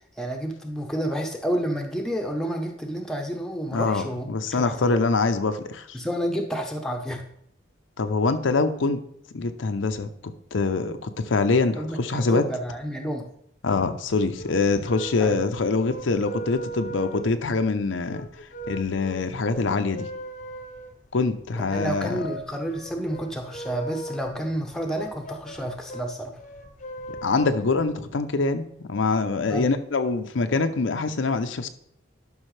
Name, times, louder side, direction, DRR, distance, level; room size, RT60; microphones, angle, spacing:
voice 1, 0.2-5.0 5.9-7.2 11.8-13.3 15.2-15.4 21.6-26.4 29.5-29.7, equal, 5° left, 2 dB, 0.8 m, -30 dB
voice 2, 3.7-6.0 8.0-9.0 9.3-10.1 10.5-12.5 13.6-18.2 18.7-20.1 21.1-22.2 27.2-31.7, left 3 dB, 90° left, 8 dB, 0.6 m, -24 dB
sound 1, 14.3-28.1, right 1 dB, 40° left, 0.7 m, -39 dB
11.5 x 5.5 x 3.2 m, 0.70 s
head